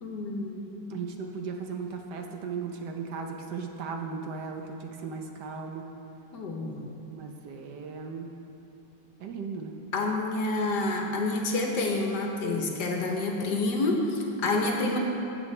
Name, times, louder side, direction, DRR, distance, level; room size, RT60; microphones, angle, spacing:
voice 1, 0.0-0.9 6.3-7.0 9.9-15.0, left 2 dB, 65° left, 1 dB, 1.5 m, -28 dB
voice 2, 0.9-5.9 7.1-8.3 9.2-9.7 14.5-14.6, right 5 dB, 70° right, 3 dB, 1.2 m, -37 dB
15.5 x 7.9 x 3.2 m, 3.0 s
omnidirectional pair, 2.0 m